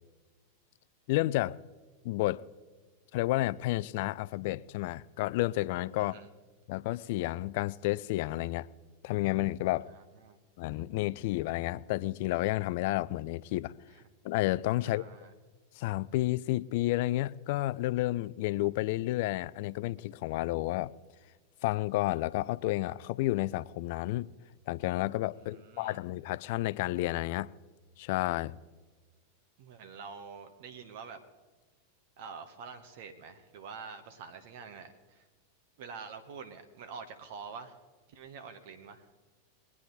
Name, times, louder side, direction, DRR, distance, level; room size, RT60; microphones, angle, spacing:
voice 1, 1.1-1.6 2.0-2.4 3.1-6.1 6.7-8.7 9.0-9.9 10.6-13.7 14.2-15.0 15.8-20.9 21.6-24.3 24.7-27.5 28.0-28.6, left 17 dB, 50° left, 0.4 m, -31 dB
voice 2, 5.9-6.3 9.9-10.4 13.9-14.0 14.8-15.3 25.3-26.0 29.6-31.2 32.2-35.3 35.8-37.8 38.1-39.1, right 5 dB, 50° right, 1.1 m, -46 dB
22.0 x 9.6 x 4.0 m
figure-of-eight pair, 90°, 0 cm